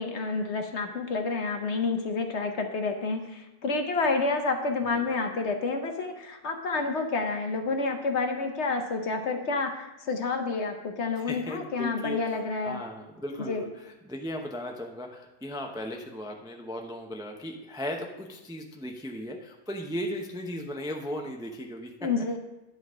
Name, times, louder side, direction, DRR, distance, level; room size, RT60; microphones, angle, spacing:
voice 1, 0.0-12.8 13.5-13.6 22.0-22.4, left 3 dB, 55° left, 5 dB, 1.0 m, -29 dB
voice 2, 11.2-21.9, equal, 5° right, 2 dB, 0.3 m, -37 dB
10.5 x 4.0 x 6.2 m, 1.0 s
omnidirectional pair, 1.6 m